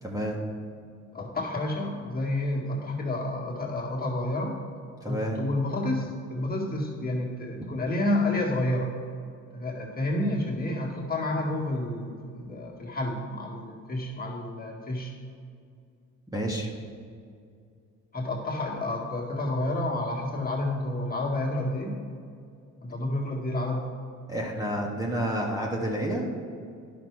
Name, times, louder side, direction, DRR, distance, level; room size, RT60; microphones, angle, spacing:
voice 1, 0.0-0.4 5.0-5.4 16.3-16.7 24.3-26.3, right 1 dB, 10° right, -2 dB, 1.5 m, -29 dB
voice 2, 1.1-4.6 5.1-8.9 9.5-15.1 18.1-22.0 22.8-23.9, left 1 dB, 30° left, -3 dB, 2.0 m, -30 dB
10.5 x 6.0 x 4.7 m, 2.3 s
cardioid pair, 90°, 30 cm